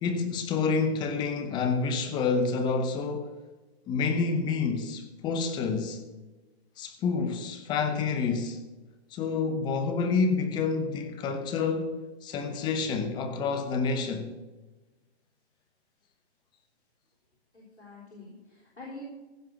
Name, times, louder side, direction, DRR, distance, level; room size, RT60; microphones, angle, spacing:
voice 1, 0.0-3.3 3.9-6.0 6.8-8.6 9.1-14.3, left 4 dB, 15° left, 0.9 m, -28 dB
voice 2, 17.5-19.0, left 2 dB, 90° left, 3.8 m, -46 dB
15.5 x 5.4 x 7.1 m
hypercardioid pair, 140°, 33 cm